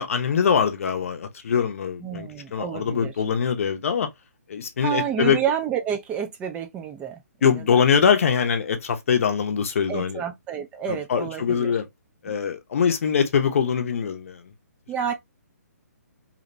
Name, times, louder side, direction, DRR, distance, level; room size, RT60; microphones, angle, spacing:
voice 1, 0.0-4.1 4.5-5.4 7.4-10.2 10.9-11.9 12.2-14.5, left 7 dB, 55° left, 0.6 m, -23 dB
voice 2, 2.0-3.1 4.8-7.2 7.7-7.8 9.9-11.7 14.9-15.1, right 8 dB, 15° right, 0.3 m, -29 dB
2.8 x 2.1 x 2.5 m
figure-of-eight pair, 135°, 9 cm